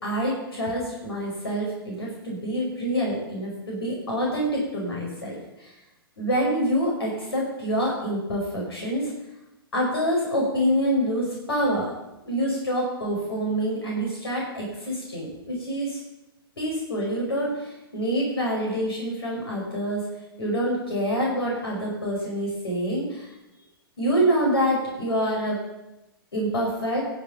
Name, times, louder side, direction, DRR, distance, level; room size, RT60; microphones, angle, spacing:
voice 1, 0.0-5.7 6.2-9.1 9.7-11.9 12.3-16.0 16.6-20.1 20.4-23.3 24.0-25.6 26.3-27.0, equal, 80° left, -3 dB, 5.5 m, -26 dB
22.0 x 7.5 x 5.9 m, 0.96 s
hypercardioid pair, 115°, 13 cm